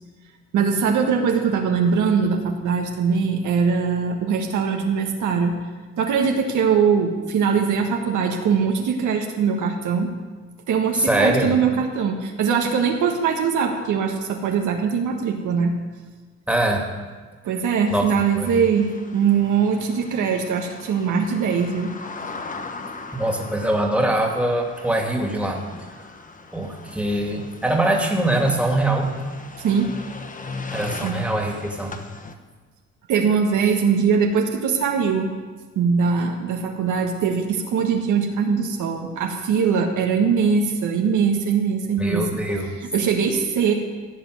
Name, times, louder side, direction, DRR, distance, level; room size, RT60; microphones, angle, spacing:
voice 1, 0.5-5.5 6.0-10.1 10.7-15.7 17.4-18.9 19.1-21.9 29.6-29.9 31.0-31.2 33.1-35.3 35.7-42.3 42.9-43.7, right 6 dB, 80° right, 2 dB, 1.6 m, -21 dB
voice 2, 10.9-11.6 16.5-16.9 17.9-18.1 18.4-18.6 23.1-25.6 26.5-29.1 30.7-32.0 42.0-42.8, right 1 dB, 5° right, 1 dB, 2.4 m, -23 dB
sound 1, 17.9-32.3, left 3 dB, 25° left, 1.0 m, -38 dB
15.5 x 5.2 x 9.3 m, 1.4 s
cardioid pair, 90°, 30 cm